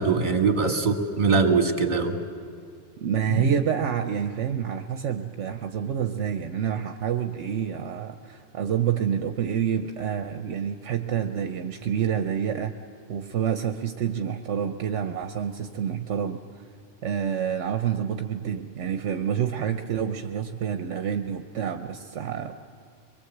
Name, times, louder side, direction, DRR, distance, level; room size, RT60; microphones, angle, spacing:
voice 1, 0.0-2.2 3.3-3.5, right 4 dB, 40° right, 4 dB, 1.9 m, -22 dB
voice 2, 3.0-12.8 13.1-16.4 17.0-22.6, right 8 dB, 75° right, 7 dB, 1.1 m, -28 dB
23.5 x 22.0 x 7.9 m, 2.1 s
omnidirectional pair, 1.2 m